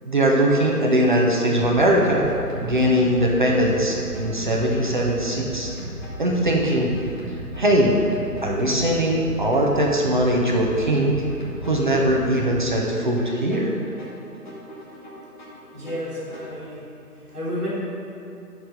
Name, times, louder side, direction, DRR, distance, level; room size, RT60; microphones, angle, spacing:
voice 1, 0.0-2.3 2.6-5.7 6.2-6.9 7.6-7.9 8.4-11.2 11.6-13.8, right 1 dB, 30° right, -2 dB, 0.8 m, -20 dB
sound 1, 1.6-16.6, right 1 dB, 30° left, 1.5 m, -35 dB
voice 2, 15.7-16.9 17.3-17.7, equal, ahead, -21 dB, 1.2 m, -31 dB
11.5 x 4.8 x 5.3 m, 2.7 s
figure-of-eight pair, 165°, 47 cm